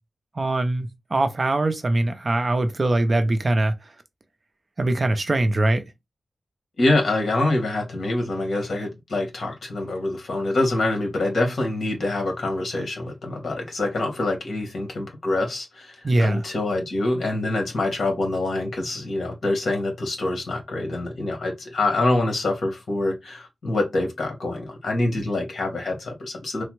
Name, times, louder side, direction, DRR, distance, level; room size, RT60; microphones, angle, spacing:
voice 1, 0.4-3.7 4.8-5.9 16.0-16.4, right 2 dB, 35° right, 0.4 m, -22 dB
voice 2, 6.8-26.6, left 2 dB, 70° left, 1.2 m, -25 dB
3.3 x 2.0 x 3.0 m
wide cardioid pair, 170°, 0 cm